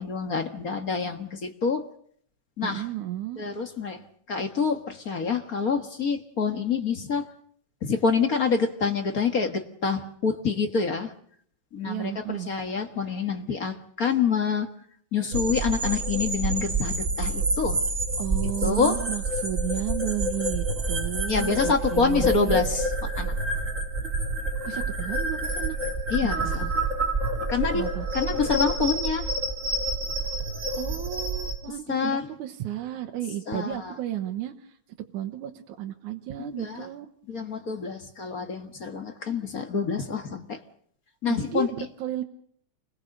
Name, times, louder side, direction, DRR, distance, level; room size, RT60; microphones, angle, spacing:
voice 1, 0.0-1.8 2.6-2.8 3.4-4.0 4.3-7.2 7.8-11.1 11.7-14.7 15.1-17.8 18.6-18.9 21.3-23.6 26.1-26.7 27.5-27.8 28.1-29.3 31.9-32.2 33.5-33.9 36.4-36.9 37.3-40.6 41.2-41.7, left 5 dB, 40° left, 6 dB, 1.5 m, -27 dB
voice 2, 2.6-3.5 11.8-12.5 18.2-22.6 24.7-25.8 26.2-26.7 27.7-28.1 30.8-34.8 35.1-37.1 41.3-42.2, right 12 dB, 85° right, 4 dB, 2.7 m, -33 dB
sound 1, 15.3-31.5, right 2 dB, 25° right, 3.2 m, -28 dB
29.0 x 21.5 x 6.6 m, 0.63 s
omnidirectional pair, 3.4 m